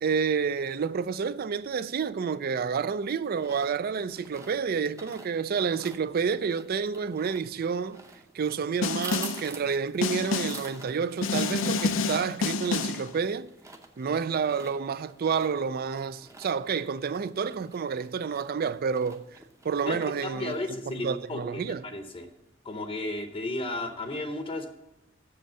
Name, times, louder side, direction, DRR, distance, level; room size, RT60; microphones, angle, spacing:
voice 1, 0.0-8.0 8.3-13.5 14.0-19.2 19.6-20.5 20.9-21.8, right 6 dB, 50° right, 0.4 m, -29 dB
sound 1, 3.0-21.0, right 3 dB, 15° right, 0.7 m, -48 dB
Snare drum, 8.8-9.5 10.0-10.7 11.2-13.1, left 4 dB, 85° left, 0.5 m, -28 dB
voice 2, 20.2-22.3 22.6-24.7, left 2 dB, 30° left, 0.7 m, -34 dB
7.8 x 6.4 x 6.8 m
head